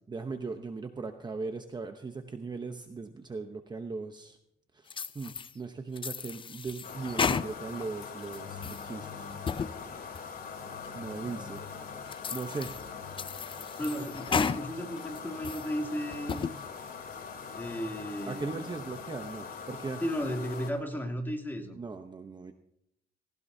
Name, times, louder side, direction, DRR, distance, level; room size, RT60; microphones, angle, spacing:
voice 1, 0.1-4.4 4.7-9.3 10.9-11.7 12.3-12.7 18.3-20.0 21.7-22.5, right 4 dB, 25° right, 6 dB, 0.9 m, -38 dB
sound 1, 4.9-5.5 6.0-7.8 8.2-8.9 9.3-9.7 10.1-10.2 10.8-10.9 11.6-11.7 12.1-12.8 13.2-14.6 15.0-15.7 16.1-16.5, left 6 dB, 30° left, 0.5 m, -33 dB
sound 2, 6.8-20.7, left 6 dB, 55° left, 3.3 m, -42 dB
voice 2, 13.8-16.5 17.5-18.6 20.0-21.8, equal, 10° left, 2 dB, 2.8 m, -34 dB
19.0 x 18.0 x 2.8 m, 0.76 s
cardioid pair, 115°, 18 cm